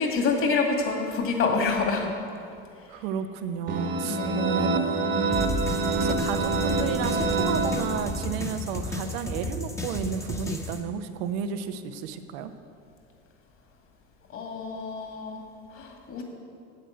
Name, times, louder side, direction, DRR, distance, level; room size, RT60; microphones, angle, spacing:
voice 1, 0.0-2.1 2.9-3.0 4.0-4.4 14.3-15.4 15.7-16.2, left 4 dB, 45° left, 2 dB, 2.2 m, -27 dB
voice 2, 2.9-5.3 5.9-12.5, right 7 dB, 85° right, 9 dB, 0.9 m, -32 dB
sound 1, 3.7-8.4, right 3 dB, 35° right, 1.3 m, -26 dB
sound 2, 5.3-10.8, left 1 dB, 10° left, 1.1 m, -33 dB
9.8 x 7.7 x 8.0 m, 2.4 s
supercardioid pair, 110°, 30 cm